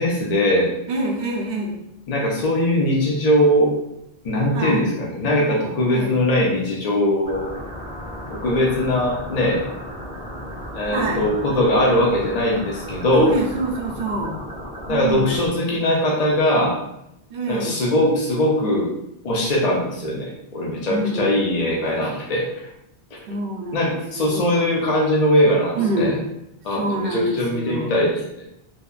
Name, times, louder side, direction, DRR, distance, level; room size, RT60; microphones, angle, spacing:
voice 1, 0.0-0.7 2.1-3.7 4.2-7.5 8.3-9.6 10.7-13.3 14.9-16.8 17.5-18.9 19.2-22.5 23.7-26.1 26.6-28.4, left 1 dB, 50° left, -3 dB, 0.5 m, -20 dB
voice 2, 0.9-1.8 4.5-4.8 5.9-6.2 10.9-11.3 13.1-14.4 14.9-15.4 17.3-17.8 20.9-21.3 23.3-24.4 25.8-26.2 26.7-28.0, right 2 dB, 65° right, 0 dB, 0.7 m, -26 dB
sound 1, 7.2-15.5, equal, 30° left, 1.3 m, -35 dB
2.7 x 2.2 x 2.3 m, 0.82 s
omnidirectional pair, 1.1 m